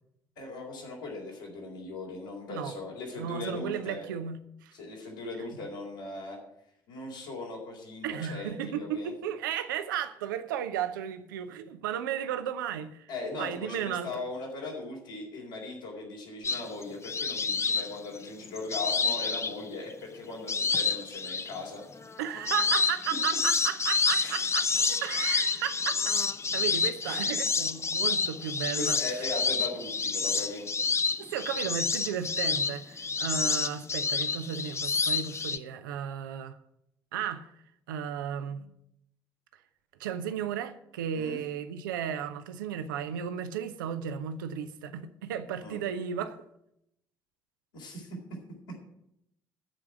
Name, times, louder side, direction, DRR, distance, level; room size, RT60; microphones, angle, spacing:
voice 1, 0.4-4.1 4.7-6.4 6.9-9.1 13.1-21.8 24.2-24.4 27.0-27.3 28.7-30.7 41.1-41.4 45.6-45.8 47.7-48.2, left 3 dB, 70° left, 3.9 m, -39 dB
voice 2, 3.2-4.7 8.0-13.1 13.4-14.1 22.2-26.0 26.5-29.2 31.3-36.6 37.1-37.5 37.9-38.7 40.0-46.4, right 9 dB, 70° right, 0.7 m, -34 dB
sound 1, 16.4-19.9 20.5-21.6 22.0-35.6, left 4 dB, 25° left, 0.6 m, -29 dB
14.0 x 4.8 x 9.1 m
figure-of-eight pair, 50°, 11 cm